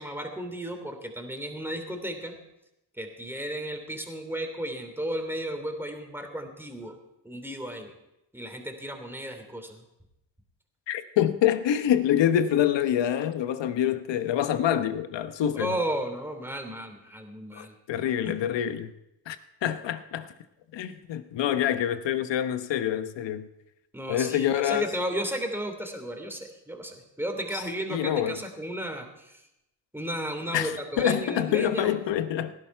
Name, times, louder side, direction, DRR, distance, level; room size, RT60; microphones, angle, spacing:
voice 1, 0.0-2.3 3.0-7.0 7.2-7.9 8.3-9.8 15.5-17.7 18.2-18.4 23.9-29.4 29.9-31.9, right 1 dB, 5° right, 3.1 m, -34 dB
voice 2, 10.9-15.8 17.5-18.9 19.3-20.3 20.7-23.5 24.1-24.9 27.5-27.6 27.9-28.4 30.5-32.5, left 10 dB, 80° left, 1.1 m, -26 dB
18.0 x 11.5 x 4.6 m
cardioid pair, 65°, 43 cm